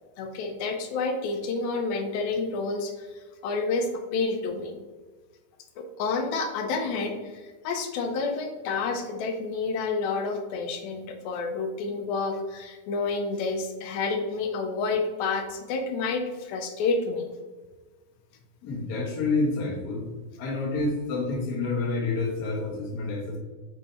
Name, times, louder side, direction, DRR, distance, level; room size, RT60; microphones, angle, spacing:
voice 1, 0.2-3.1 3.4-4.8 5.8-17.3, left 4 dB, 80° left, 4 dB, 2.4 m, -29 dB
voice 2, 18.6-20.0 20.4-23.4, left 3 dB, 60° left, -3 dB, 1.0 m, -28 dB
7.3 x 3.3 x 4.1 m, 1.3 s
omnidirectional pair, 4.3 m